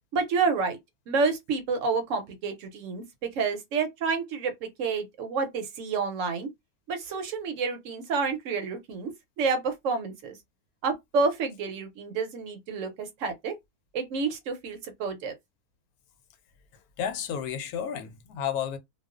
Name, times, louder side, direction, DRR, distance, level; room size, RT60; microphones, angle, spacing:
voice 1, 0.1-0.8 1.1-6.5 6.9-9.1 9.4-10.4 10.8-13.5 13.9-15.4, right 4 dB, 65° right, 0.9 m, -29 dB
voice 2, 17.0-18.8, left 8 dB, 90° left, 1.1 m, -32 dB
2.3 x 2.3 x 2.3 m
omnidirectional pair, 1.5 m